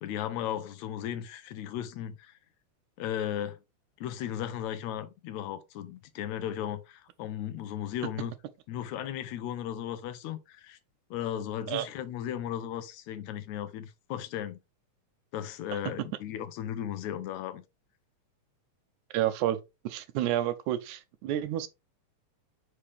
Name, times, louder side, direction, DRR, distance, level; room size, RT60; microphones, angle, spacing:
voice 1, 0.0-2.3 3.0-3.6 4.0-8.3 8.7-10.8 11.1-14.6 15.3-17.6, left 10 dB, 75° left, 1.9 m, -36 dB
voice 2, 19.1-19.6 19.9-21.7, right 12 dB, 80° right, 1.9 m, -29 dB
5.7 x 5.0 x 3.4 m
omnidirectional pair, 3.6 m